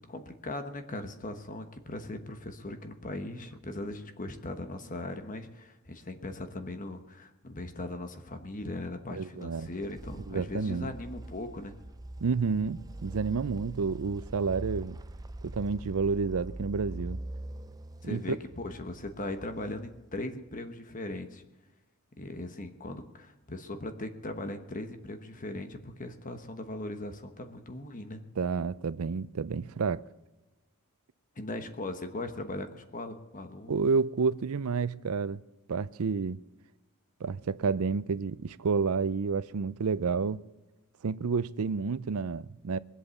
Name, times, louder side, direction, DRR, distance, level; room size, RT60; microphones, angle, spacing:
voice 1, 0.0-11.7 18.0-21.4 22.2-28.2 31.3-33.8, left 2 dB, 35° left, 1.2 m, -39 dB
voice 2, 9.1-9.7 10.3-10.9 12.2-15.0 15.4-17.2 18.0-18.2 28.4-30.0 33.7-35.4 35.7-36.4 37.2-40.4 41.0-42.8, right 5 dB, 70° right, 0.5 m, -30 dB
sound 1, 9.4-20.2, right 1 dB, 15° right, 0.5 m, -43 dB
21.5 x 8.3 x 7.0 m
head